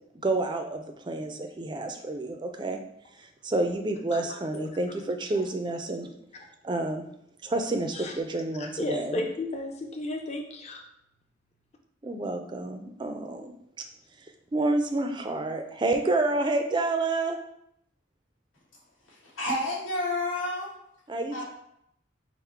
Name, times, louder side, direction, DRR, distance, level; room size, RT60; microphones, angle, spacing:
voice 1, 0.2-2.8 3.2-6.1 6.6-7.0 7.4-9.2 12.0-13.5 14.5-17.4 21.1-21.4, right 2 dB, 20° right, 5 dB, 0.4 m, -29 dB
voice 2, 8.6-10.8, left 2 dB, 30° left, 2 dB, 0.5 m, -34 dB
voice 3, 19.1-20.7 21.3-21.4, left 1 dB, 80° left, -5 dB, 1.6 m, -30 dB
5.6 x 2.1 x 4.4 m, 0.77 s
head